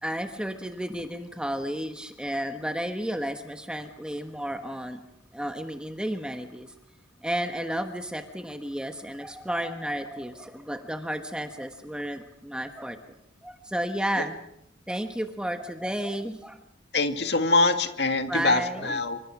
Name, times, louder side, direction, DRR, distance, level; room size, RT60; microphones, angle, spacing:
voice 1, 0.0-5.0 5.3-6.7 7.2-13.0 13.4-14.4 14.9-16.6 18.3-19.0, equal, 5° right, 6 dB, 1.3 m, -32 dB
voice 2, 16.9-19.2, left 3 dB, 60° left, 7 dB, 2.3 m, -24 dB
27.5 x 25.5 x 6.1 m, 0.75 s
head